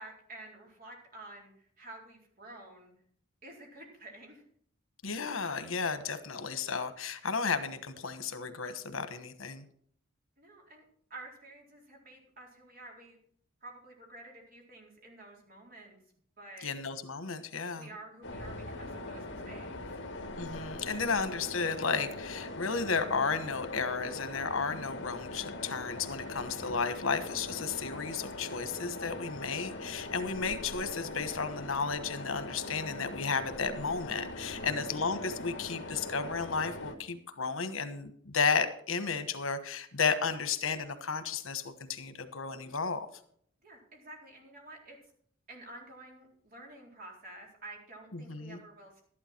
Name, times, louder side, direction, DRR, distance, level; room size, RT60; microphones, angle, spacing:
voice 1, 0.0-2.9 3.4-4.4 10.4-10.8 11.1-13.2 13.6-16.0 16.4-16.7 17.7-19.7 34.5-34.7 43.6-45.0 45.5-49.0, right 2 dB, 45° right, 0 dB, 4.0 m, -50 dB
voice 2, 5.0-9.6 16.6-17.9 20.4-43.1 48.1-48.6, left 5 dB, 85° left, 10 dB, 1.3 m, -33 dB
sound 1, 18.2-37.0, left 2 dB, 60° left, 1.7 m, -41 dB
12.5 x 11.0 x 4.5 m, 0.63 s
head